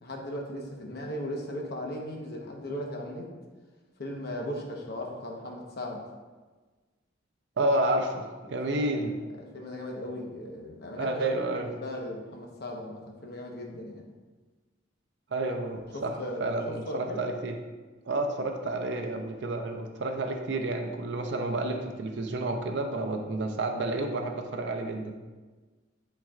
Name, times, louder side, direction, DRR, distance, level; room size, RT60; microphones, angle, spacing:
voice 1, 0.0-3.3 4.0-6.1 8.7-9.0 9.4-14.1 15.9-17.2, left 1 dB, 55° left, 0 dB, 1.1 m, -37 dB
voice 2, 7.6-9.1 11.0-11.7 15.3-17.6 18.1-25.1, right 2 dB, 65° right, 4 dB, 0.6 m, -30 dB
10.5 x 4.4 x 2.4 m, 1.3 s
head